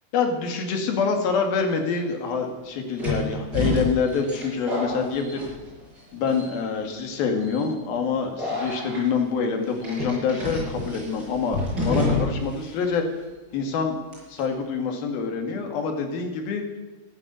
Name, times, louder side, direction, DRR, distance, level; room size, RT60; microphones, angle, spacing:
voice 1, 0.1-5.4 6.1-13.0 13.5-14.0 14.3-16.6, left 5 dB, 65° left, 4 dB, 3.8 m, -26 dB
sound 1, 1.6-1.7 3.0-6.0 6.3-6.8 7.4-7.7 8.4-9.0 9.8-12.6 12.8-12.9 14.1-14.4, left 2 dB, 25° right, 6.8 m, -29 dB
15.0 x 9.9 x 9.5 m, 1.1 s
omnidirectional pair, 4.7 m